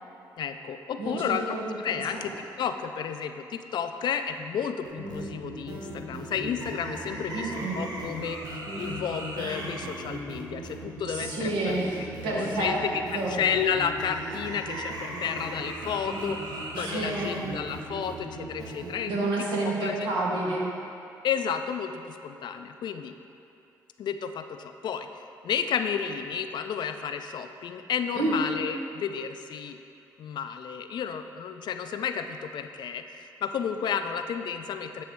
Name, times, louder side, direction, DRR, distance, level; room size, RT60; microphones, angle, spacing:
voice 1, 0.4-11.8 12.3-16.4 16.8-19.3 19.6-19.9 21.2-23.1 24.0-25.1 25.4-29.8 30.2-35.0, left 7 dB, 65° left, 8 dB, 0.3 m, -32 dB
voice 2, 1.0-2.2 7.3-7.8 11.1-12.8 13.1-13.4 16.8-17.5 19.1-20.7 28.1-28.5, right 2 dB, 85° right, -3 dB, 1.1 m, -29 dB
sound 1, 4.8-19.0, right 1 dB, 55° right, 0.9 m, -37 dB
8.5 x 3.0 x 4.6 m, 2.7 s
supercardioid pair, 65°, 8 cm